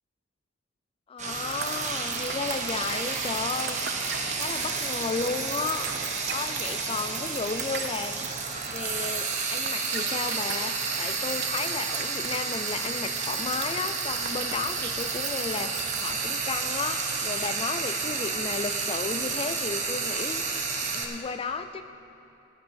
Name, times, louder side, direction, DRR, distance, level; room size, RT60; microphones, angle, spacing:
voice 1, 1.1-3.8 4.3-8.3 8.7-21.8, left 4 dB, 30° left, 9 dB, 0.3 m, -33 dB
Frying (food), 1.2-21.0, right 4 dB, 40° right, 1.2 m, -31 dB
sound 1, 1.5-16.2, right 9 dB, 55° right, 0.8 m, -37 dB
16.0 x 6.0 x 8.7 m, 2.8 s
head